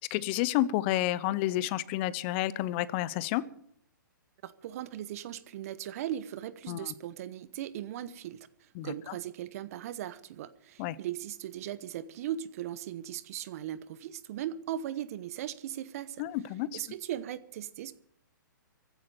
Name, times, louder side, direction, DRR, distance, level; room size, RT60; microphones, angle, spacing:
voice 1, 0.1-3.4 6.7-6.9 8.8-8.9 10.8-11.0 16.2-16.7, left 15 dB, 35° left, 18 dB, 0.7 m, -30 dB
voice 2, 4.4-16.2 16.7-17.9, right 11 dB, 45° right, 16 dB, 1.0 m, -38 dB
15.0 x 8.4 x 9.3 m, 0.67 s
hypercardioid pair, 130°, 11 cm